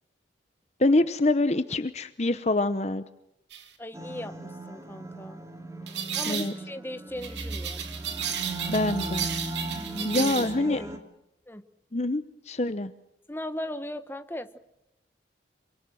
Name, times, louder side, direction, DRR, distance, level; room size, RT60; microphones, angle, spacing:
voice 1, 0.8-3.0 6.3-6.5 8.7-9.3 10.0-10.8 11.9-12.9, left 2 dB, 35° left, 12 dB, 0.8 m, -25 dB
sound 1, 3.5-3.7 5.9-6.5 7.2-10.5, right 8 dB, 75° right, 3.0 m, -33 dB
voice 2, 3.8-5.4 6.1-7.8 10.0-10.9 11.5-11.6 13.3-14.6, left 1 dB, 10° left, 10 dB, 1.2 m, -38 dB
sound 2, 3.9-11.0, right 1 dB, 15° right, 2.7 m, -37 dB
27.0 x 24.5 x 6.3 m, 0.88 s
head